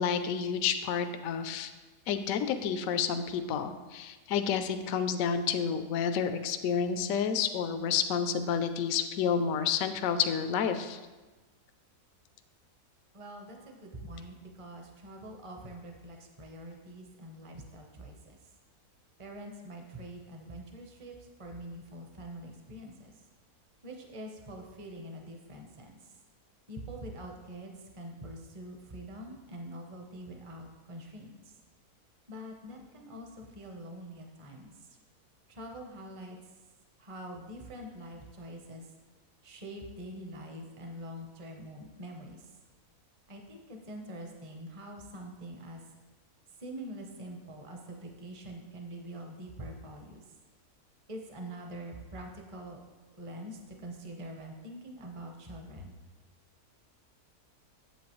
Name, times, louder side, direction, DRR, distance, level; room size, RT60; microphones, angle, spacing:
voice 1, 0.0-1.7 2.1-11.0, left 7 dB, 70° left, 9 dB, 0.9 m, -30 dB
voice 2, 13.1-18.4 19.2-23.2 23.8-26.1 26.7-31.6 32.3-34.9 35.5-36.4 37.0-38.9 39.4-42.5 43.3-45.8 46.6-50.2 51.1-52.8 53.1-55.9, right 1 dB, 25° right, 2 dB, 0.7 m, -45 dB
8.5 x 7.9 x 3.0 m, 1.2 s
omnidirectional pair, 1.6 m